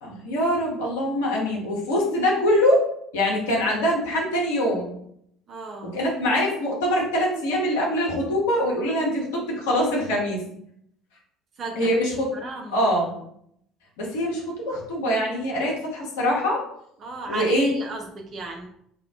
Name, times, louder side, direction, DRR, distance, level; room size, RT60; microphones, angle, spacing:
voice 1, 0.0-2.9 3.1-4.9 5.9-10.4 11.8-12.3 12.7-13.2 14.0-16.6 17.3-17.7, equal, 65° left, -3 dB, 0.9 m, -23 dB
voice 2, 5.5-6.0 11.6-11.9 12.3-12.9 17.0-18.7, right 3 dB, 40° right, 1 dB, 0.7 m, -35 dB
2.8 x 2.3 x 3.5 m, 0.70 s
figure-of-eight pair, 55°, 0 cm